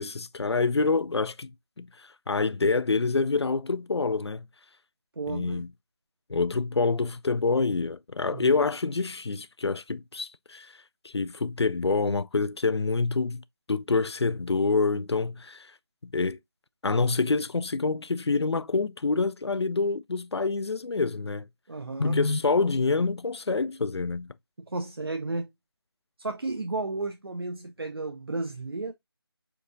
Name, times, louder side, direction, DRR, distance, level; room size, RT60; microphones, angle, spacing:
voice 1, 0.0-1.5 1.8-4.5 5.3-5.7 6.3-10.7 11.0-15.7 16.0-16.4 16.8-21.5 22.0-24.3, left 4 dB, 80° left, 0.4 m, -27 dB
voice 2, 5.2-5.7 8.3-8.5 21.7-22.2 24.7-25.5 26.2-28.9, right 3 dB, 60° right, 0.5 m, -33 dB
4.5 x 3.6 x 2.5 m
figure-of-eight pair, 160°, 14 cm